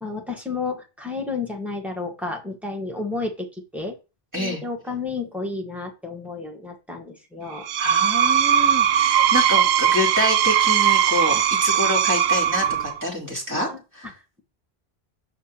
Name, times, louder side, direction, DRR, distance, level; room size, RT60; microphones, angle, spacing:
voice 1, 0.0-3.5 3.7-3.9 4.4-7.7 9.2-9.3 13.5-13.8, left 3 dB, ahead, 0 dB, 1.4 m, -31 dB
Screech, 7.5-13.0, right 9 dB, 85° right, 0.8 m, -19 dB
voice 2, 7.8-13.7 13.9-14.1, left 1 dB, 15° right, -1 dB, 2.7 m, -27 dB
7.2 x 5.9 x 2.9 m, 0.30 s
omnidirectional pair, 1.0 m